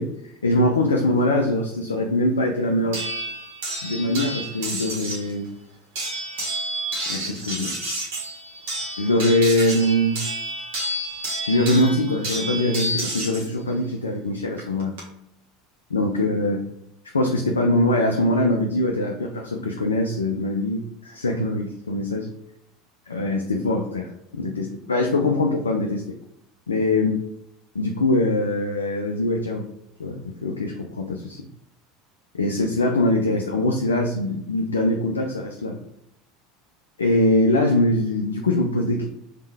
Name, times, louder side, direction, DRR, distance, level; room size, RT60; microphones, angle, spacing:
voice 1, 0.0-3.0 3.8-5.5 7.1-7.7 9.0-10.2 11.5-14.9 15.9-16.7 17.1-22.3 23.1-26.0 26.7-27.1 27.7-29.7 30.0-31.4 32.3-35.8 37.0-39.0, left 1 dB, 80° left, 2 dB, 0.5 m, -22 dB
sound 1, 2.9-5.3 5.9-13.5 14.6-15.0, right 1 dB, 60° right, 1.6 m, -30 dB
3.6 x 3.6 x 3.4 m, 0.77 s
figure-of-eight pair, 75°, 0 cm